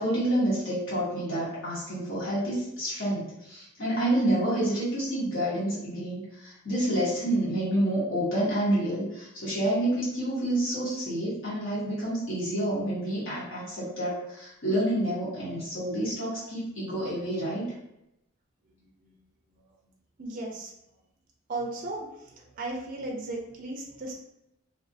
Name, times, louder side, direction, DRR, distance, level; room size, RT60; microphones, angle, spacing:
voice 1, 0.0-17.7, right 1 dB, 55° left, -9 dB, 1.0 m, -28 dB
voice 2, 18.6-19.2 19.5-19.7 20.2-20.7 21.5-24.1, right 2 dB, 40° right, -1 dB, 0.4 m, -36 dB
2.4 x 2.2 x 2.5 m, 0.84 s
head